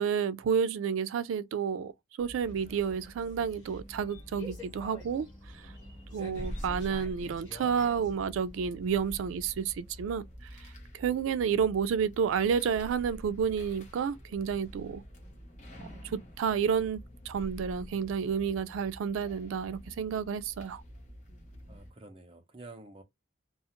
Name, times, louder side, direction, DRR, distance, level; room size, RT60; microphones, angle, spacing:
voice 1, 0.0-1.9 2.2-5.3 6.1-10.2 10.9-15.0 16.0-17.0 17.3-20.8, right 7 dB, 90° right, 0.3 m, -30 dB
sound 1, 2.2-21.9, equal, 40° left, 0.8 m, -47 dB
sound 2, 2.4-9.3, left 2 dB, 20° left, 1.4 m, -50 dB
voice 2, 6.1-6.6 21.7-23.0, right 2 dB, 30° right, 0.5 m, -50 dB
2.4 x 2.3 x 2.8 m
head